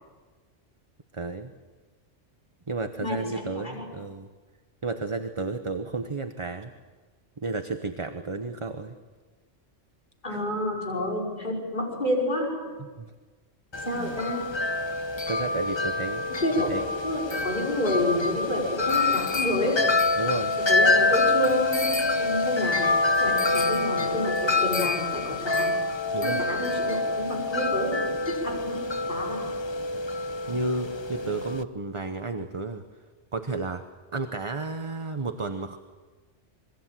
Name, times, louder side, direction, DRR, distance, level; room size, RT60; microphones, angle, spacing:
voice 1, 1.1-1.5 2.7-4.3 4.8-6.7 7.4-9.0 10.3-10.4 12.8-13.1 13.9-14.2 15.3-16.2 16.7-16.8 20.2-20.5 26.1-26.4 30.5-32.8 33.3-33.8 34.1-35.8, right 3 dB, 25° right, 7 dB, 1.0 m, -32 dB
voice 2, 3.0-3.9 10.2-12.5 13.9-14.5 16.4-16.7 17.0-19.9 20.7-25.7 26.2-29.4, left 1 dB, 40° left, 0 dB, 5.8 m, -29 dB
Wind chime, 13.7-31.6, left 3 dB, 25° left, 0.8 m, -26 dB
27.0 x 22.0 x 7.6 m, 1.4 s
omnidirectional pair, 1.2 m